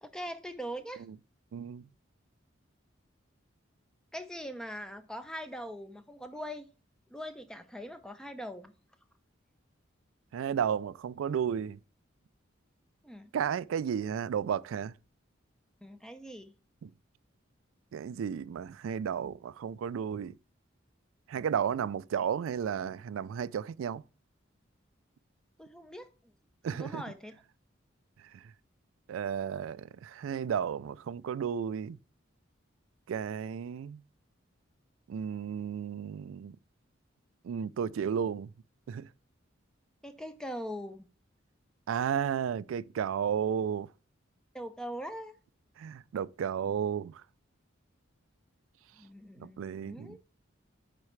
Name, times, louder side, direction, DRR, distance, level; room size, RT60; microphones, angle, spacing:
voice 1, 0.0-1.0 4.1-6.7 7.1-8.7 13.0-13.3 15.8-16.5 25.6-26.3 26.7-27.3 40.0-41.1 44.5-45.4 49.0-50.2, equal, 5° left, 0.6 m, -42 dB
voice 2, 1.5-1.9 10.3-11.8 13.3-14.9 16.8-16.9 17.9-20.3 21.3-24.0 26.6-27.0 29.1-32.0 33.1-34.0 35.1-36.6 37.4-38.5 38.9-39.1 41.9-43.9 45.8-47.2 49.4-50.2, right 8 dB, 90° right, 0.3 m, -33 dB
9.4 x 4.2 x 3.2 m
head